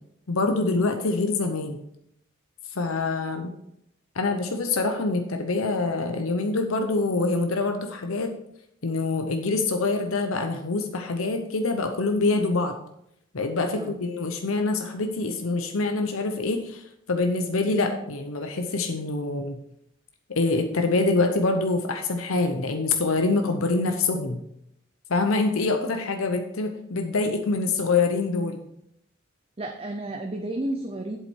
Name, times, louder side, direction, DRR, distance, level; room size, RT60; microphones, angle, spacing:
voice 1, 0.3-1.8 2.7-3.5 4.1-8.3 8.8-12.8 13.3-19.6 20.3-24.4 25.1-28.6, left 3 dB, 85° left, 6 dB, 0.8 m, -25 dB
voice 2, 29.6-31.2, right 1 dB, 30° right, 4 dB, 0.6 m, -31 dB
8.2 x 7.5 x 4.5 m, 0.77 s
head